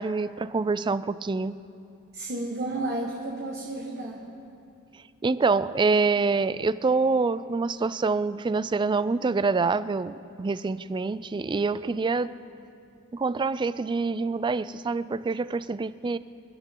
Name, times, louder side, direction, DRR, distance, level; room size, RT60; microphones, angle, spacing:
voice 1, 0.0-1.6 5.2-12.3 13.1-16.2, right 4 dB, 20° right, 16 dB, 0.3 m, -26 dB
voice 2, 2.1-4.3, right 2 dB, 50° right, -2 dB, 1.4 m, -32 dB
28.5 x 11.5 x 3.8 m, 2.6 s
head